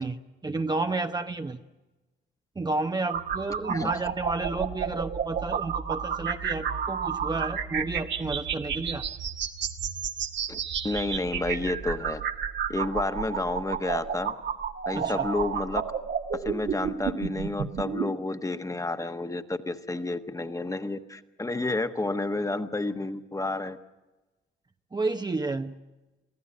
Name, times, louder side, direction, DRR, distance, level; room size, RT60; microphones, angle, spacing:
voice 1, 0.0-1.6 2.6-9.0 14.9-15.3 24.9-25.7, right 3 dB, 20° right, 6 dB, 0.9 m, -31 dB
sound 1, 3.1-18.1, right 7 dB, 65° right, 1.7 m, -31 dB
voice 2, 10.8-12.2 12.7-14.3 14.9-15.8 16.3-23.8, left 2 dB, 15° left, 8 dB, 1.3 m, -30 dB
24.0 x 15.0 x 8.5 m, 1.1 s
cardioid pair, 90°, 20 cm